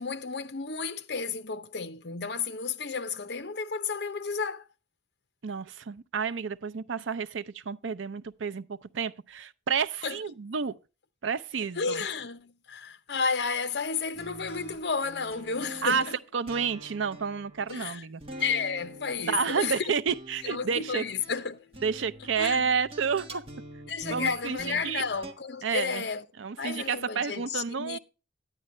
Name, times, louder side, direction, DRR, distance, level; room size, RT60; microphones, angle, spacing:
voice 1, 0.0-4.6 10.0-10.2 11.8-16.2 17.7-18.0 18.4-19.8 20.4-21.6 22.4-22.7 23.3-23.4 23.9-26.2 26.6-28.0, left 5 dB, 60° left, 0.7 m, -32 dB
voice 2, 5.4-10.7 11.2-12.0 15.8-16.0 16.3-18.2 19.3-21.1 21.8-23.4 24.1-25.1 25.6-26.1 26.4-28.0, right 6 dB, 85° right, 0.5 m, -30 dB
sound 1, 14.1-25.3, right 1 dB, 30° right, 1.4 m, -46 dB
10.0 x 9.3 x 3.1 m
head